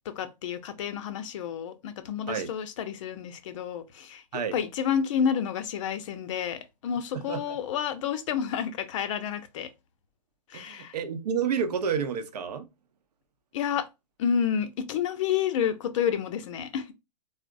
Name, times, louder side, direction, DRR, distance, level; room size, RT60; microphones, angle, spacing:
voice 1, 0.1-9.7 10.5-10.9 13.5-13.9 14.2-16.9, left 8 dB, 50° left, 0.6 m, -30 dB
voice 2, 7.1-7.6 10.5-12.7, right 7 dB, 70° right, 0.7 m, -30 dB
3.8 x 2.0 x 2.5 m
hypercardioid pair, 120°, 21 cm